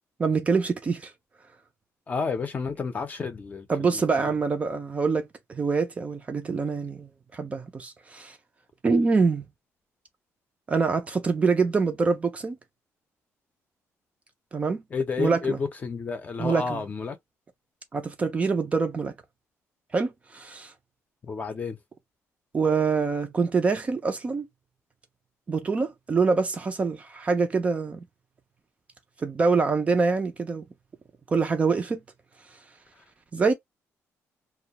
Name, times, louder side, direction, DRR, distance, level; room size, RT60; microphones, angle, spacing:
voice 1, 0.2-1.1 3.7-8.4 8.8-9.5 10.7-12.6 14.5-14.8 15.2-15.6 16.4-16.8 17.9-19.1 19.9-20.7 22.5-24.5 25.5-28.0 29.2-30.6 31.3-32.0 33.3-33.5, right 4 dB, 25° right, 0.4 m, -25 dB
voice 2, 2.1-4.3 14.9-17.2 21.2-21.8, left 5 dB, 30° left, 0.6 m, -31 dB
2.2 x 2.2 x 2.8 m
cardioid pair, 160°, 6 cm